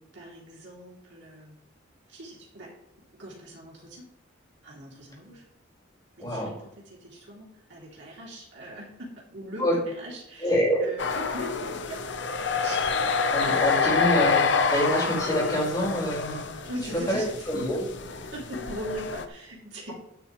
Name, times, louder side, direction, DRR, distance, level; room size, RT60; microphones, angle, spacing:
voice 1, 0.1-1.6 2.1-2.7 3.1-4.1 4.6-5.5 6.2-12.0 12.6-13.1 13.4-14.1 16.6-17.3 18.1-19.9, right 1 dB, 60° right, -5 dB, 2.8 m, -40 dB
voice 2, 10.4-10.9 13.3-16.4 17.1-17.8, equal, 20° left, -4 dB, 4.6 m, -26 dB
sound 1, 11.0-19.3, left 5 dB, 60° left, 0.8 m, -27 dB
12.0 x 9.2 x 3.1 m, 0.79 s
head